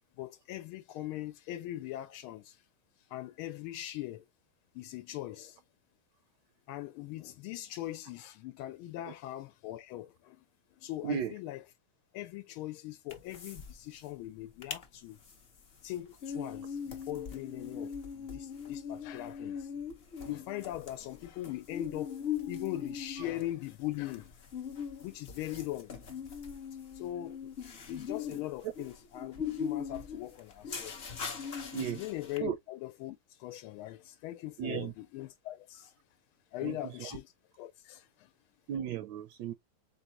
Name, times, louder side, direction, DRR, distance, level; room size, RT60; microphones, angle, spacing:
voice 1, 0.2-2.6 3.0-4.2 4.7-5.6 6.7-10.4 10.8-11.6 12.1-15.2 15.8-19.7 20.2-24.4 25.0-26.0 26.9-27.5 27.9-31.1 31.8-35.9 36.5-37.3 37.6-38.3, left 15 dB, 90° left, 1.4 m, -41 dB
voice 2, 11.0-11.3 31.7-32.0 32.4-32.6 34.6-34.9 36.6-37.1 38.7-39.5, right 9 dB, 75° right, 1.0 m, -35 dB
sound 1, 13.1-13.7 14.0-14.1 14.4-14.8 15.2-32.4, left 7 dB, 55° left, 0.7 m, -40 dB
4.0 x 3.9 x 2.7 m
omnidirectional pair, 2.3 m